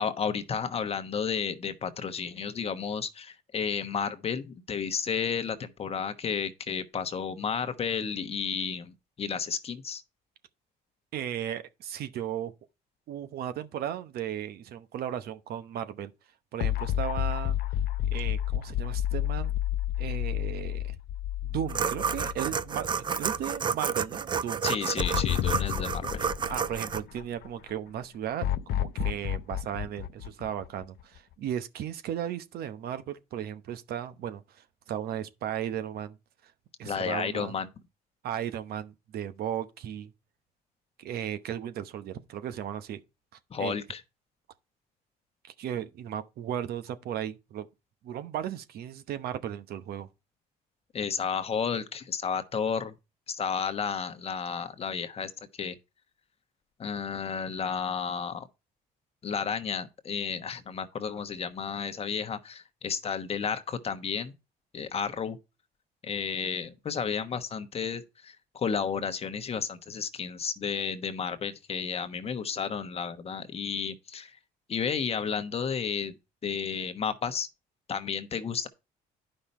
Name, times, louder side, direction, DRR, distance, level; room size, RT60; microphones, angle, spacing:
voice 1, 0.0-10.0 24.6-26.3 36.8-37.7 43.5-44.0 50.9-52.9 53.3-55.8 56.8-58.5 59.2-64.3 64.7-65.4 66.0-74.4 74.7-76.1 76.4-77.5 77.9-78.7, left 6 dB, 35° left, 1.1 m, -32 dB
voice 2, 11.1-12.5 13.1-16.1 16.5-17.6 18.1-19.5 20.0-21.0 21.4-22.9 23.2-24.6 26.5-36.2 36.4-36.5 36.8-37.5 38.2-40.1 41.0-43.0 43.6-43.7 45.6-47.7 48.0-50.1, right 10 dB, 65° right, 0.9 m, -35 dB
sound 1, 16.6-22.9 23.3-23.4 25.0-27.5 28.4-31.2, left 12 dB, 65° left, 0.6 m, -30 dB
sound 2, 21.7-27.0, right 6 dB, 30° right, 0.4 m, -30 dB
10.0 x 5.5 x 4.3 m
cardioid pair, 110°, 17 cm